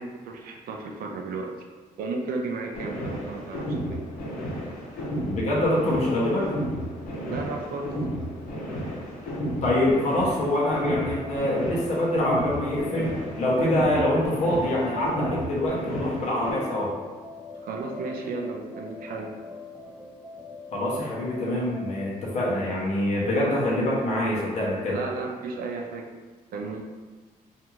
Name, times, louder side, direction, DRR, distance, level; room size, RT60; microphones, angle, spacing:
voice 1, 0.0-1.7 2.0-4.0 7.2-7.9 17.6-19.3 24.9-26.1 26.5-26.9, right 3 dB, 80° right, 2 dB, 0.4 m, -34 dB
sound 1, 2.7-16.5, equal, 85° left, 0.7 m, -33 dB
voice 2, 5.2-6.5 9.6-17.0 20.7-25.0, left 1 dB, 50° left, -5 dB, 0.7 m, -25 dB
sound 2, 10.3-22.2, left 3 dB, 10° right, 0.3 m, -42 dB
2.5 x 2.3 x 3.0 m, 1.3 s
cardioid pair, 140°, 15 cm